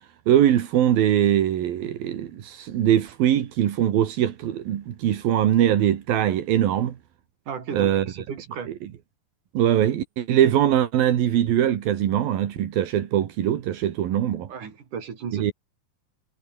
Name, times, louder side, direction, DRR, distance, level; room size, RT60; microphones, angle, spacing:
voice 1, 0.3-7.0 7.7-8.1 9.6-14.5 15.3-15.5, right 11 dB, 80° right, 3.7 m, -22 dB
voice 2, 7.5-8.7 14.5-15.5, right 6 dB, 60° right, 5.1 m, -34 dB
omnidirectional pair, 4.2 m